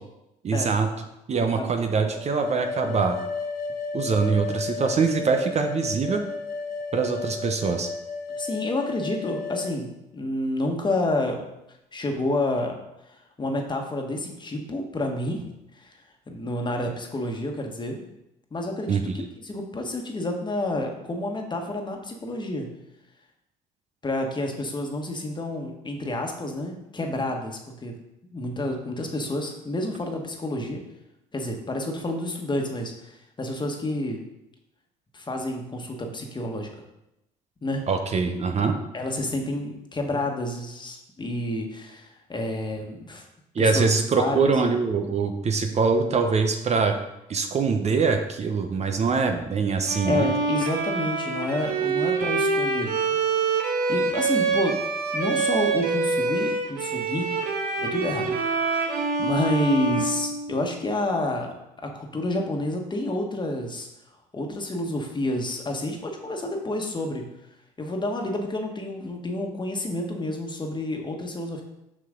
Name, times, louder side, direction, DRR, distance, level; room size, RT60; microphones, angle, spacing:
voice 1, 0.4-0.9 1.3-3.2 3.9-6.2 6.9-7.9 18.9-19.3 37.9-38.8 43.5-47.0 47.3-50.3, right 5 dB, 40° right, 5 dB, 0.9 m, -23 dB
sound 1, 2.1-9.7, left 4 dB, 60° left, 1.3 m, -33 dB
voice 2, 8.4-11.4 11.9-12.8 13.0-15.5 15.7-16.0 16.3-18.0 18.5-19.0 19.4-22.7 24.0-28.0 28.3-30.8 31.3-34.2 35.1-36.7 37.6-37.9 38.9-43.2 43.6-44.5 50.0-53.5 53.9-54.8 55.1-57.3 57.7-63.9 64.3-67.2 67.8-71.6, left 1 dB, 25° left, 2 dB, 1.5 m, -29 dB
Bowed string instrument, 49.9-60.9, right 4 dB, 65° right, 1.0 m, -26 dB
6.1 x 6.0 x 3.8 m, 0.87 s
hypercardioid pair, 60°, 17 cm